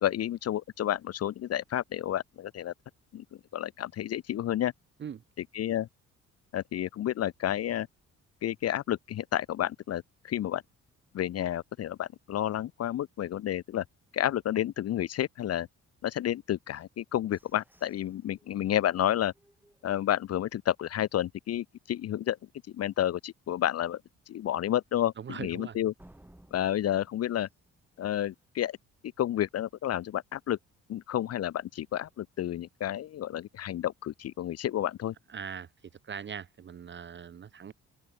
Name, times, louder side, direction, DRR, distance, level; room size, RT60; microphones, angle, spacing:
voice 1, 0.0-2.7 3.1-3.2 3.5-4.7 5.5-5.9 6.5-7.9 8.4-10.6 11.1-13.8 14.1-15.7 16.0-19.3 19.8-22.4 22.7-24.0 24.3-25.9 26.5-27.5 28.0-28.8 29.2-30.6 30.9-35.1, left 11 dB, 55° left, 0.6 m, -30 dB
sound 1, 16.8-20.6 21.0-21.1 21.5-21.9 22.3-22.4 22.9-23.0 26.0-28.6, right 1 dB, 5° right, 3.8 m, -61 dB
voice 2, 25.2-25.8 35.3-35.7 36.0-37.7, right 7 dB, 40° right, 0.8 m, -40 dB
open air
cardioid pair, 90°, 30 cm